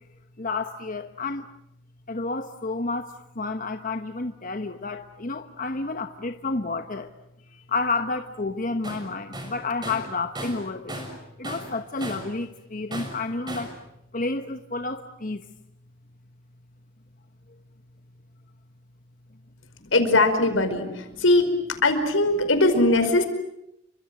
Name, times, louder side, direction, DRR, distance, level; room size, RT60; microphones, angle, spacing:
voice 1, 0.4-1.5 2.1-7.1 7.5-11.1 11.4-13.7 14.1-15.5, left 3 dB, 45° left, 1.1 m, -30 dB
Tools, 8.8-9.1 9.3-11.2 11.4-12.4 12.9-13.8, right 1 dB, 20° right, 6.4 m, -36 dB
voice 2, 19.9-21.5 21.8-23.2, left 2 dB, 85° left, 5.1 m, -20 dB
30.0 x 24.5 x 7.7 m
head